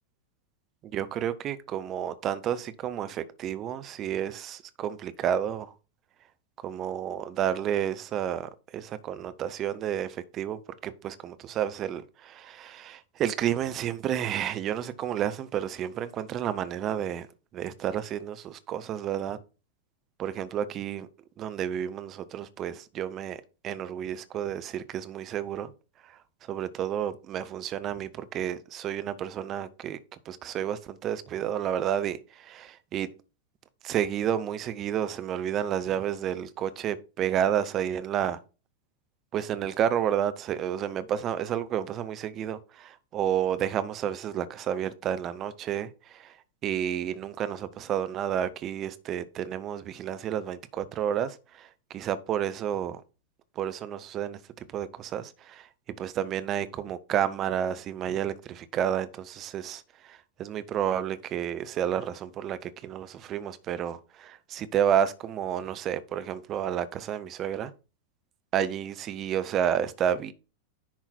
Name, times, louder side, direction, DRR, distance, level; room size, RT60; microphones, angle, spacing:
voice 1, 0.9-5.7 6.6-17.3 17.5-19.4 20.2-21.1 21.4-25.7 26.5-30.0 30.3-33.1 33.8-38.4 39.3-46.3 46.6-53.0 53.6-55.7 56.0-67.7 68.5-70.3, right 9 dB, 30° right, 0.8 m, -31 dB
10.5 x 4.0 x 4.4 m
figure-of-eight pair, 90°, 0 cm